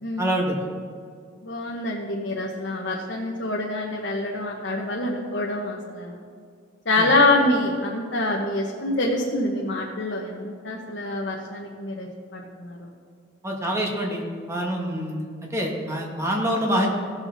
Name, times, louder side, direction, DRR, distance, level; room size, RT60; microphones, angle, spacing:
voice 1, 0.2-0.6 7.0-7.1 13.4-15.2 15.5-16.9, equal, 15° right, -1 dB, 1.7 m, -26 dB
voice 2, 1.4-6.2 6.9-12.1 12.3-12.9, left 2 dB, 65° left, -2 dB, 1.2 m, -25 dB
17.0 x 6.9 x 4.1 m, 2.2 s
head